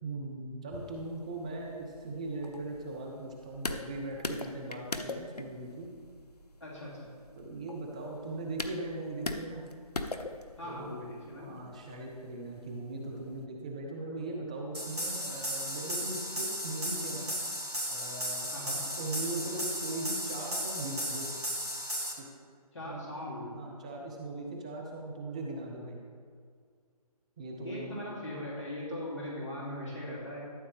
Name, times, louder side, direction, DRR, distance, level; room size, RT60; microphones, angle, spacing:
voice 1, 0.0-5.9 7.4-9.6 10.6-11.0 11.4-17.3 17.9-21.3 22.2-22.3 22.8-23.1 23.5-26.0 27.4-28.0, right 2 dB, 10° right, 0 dB, 0.4 m, -39 dB
sound 1, 0.7-13.4, left 2 dB, 85° left, 0.8 m, -43 dB
voice 2, 6.6-7.1 10.6-11.6 18.5-18.8 22.7-23.6 27.6-30.4, left 1 dB, 50° left, -5 dB, 2.8 m, -40 dB
sound 2, 14.7-22.1, equal, 85° right, 2.3 m, -35 dB
13.0 x 7.4 x 3.3 m, 2.1 s
figure-of-eight pair, 145°, 20 cm